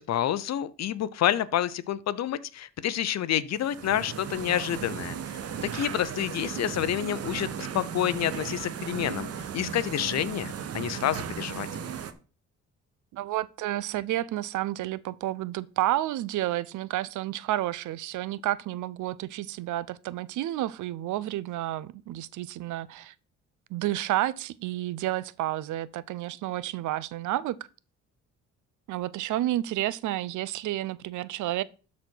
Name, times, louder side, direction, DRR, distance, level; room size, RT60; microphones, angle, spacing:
voice 1, 0.0-9.3 9.5-11.7, left 11 dB, 60° left, 0.7 m, -29 dB
sound 1, 3.5-12.1, right 8 dB, 55° right, 1.0 m, -36 dB
voice 2, 13.1-23.1 23.7-27.6 28.9-31.6, right 14 dB, 80° right, 0.6 m, -30 dB
12.5 x 4.3 x 4.5 m
cardioid pair, 90°, 30 cm